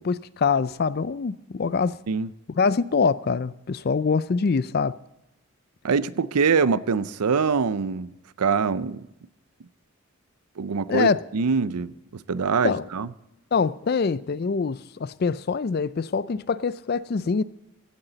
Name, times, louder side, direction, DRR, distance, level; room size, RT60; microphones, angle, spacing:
voice 1, 0.0-2.0 2.6-4.9 10.9-11.2 12.6-12.8 13.5-17.4, left 5 dB, 45° left, 0.4 m, -24 dB
voice 2, 5.8-8.1 8.4-9.1 10.6-13.1, right 5 dB, 90° right, 0.6 m, -24 dB
16.5 x 13.0 x 4.0 m
head